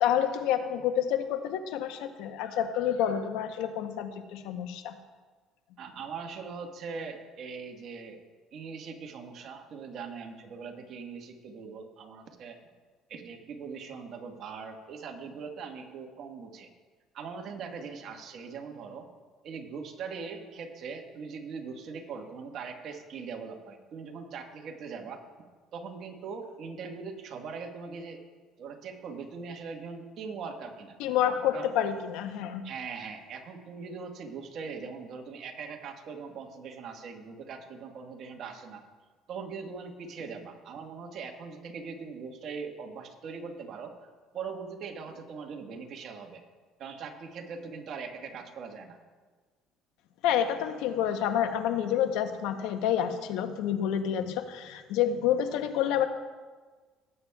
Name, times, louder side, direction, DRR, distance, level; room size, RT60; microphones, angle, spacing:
voice 1, 0.0-5.0 31.0-32.6 50.2-56.1, left 9 dB, 80° left, 8 dB, 0.8 m, -28 dB
voice 2, 5.8-8.2 8.5-12.6 13.1-16.7 17.1-19.1 19.4-25.2 25.7-28.2 28.6-31.0 31.5-31.7 32.6-38.8 39.3-46.4 46.8-49.0, right 5 dB, 55° right, 4 dB, 1.4 m, -41 dB
18.0 x 8.6 x 2.3 m, 1.4 s
cardioid pair, 110°, 0 cm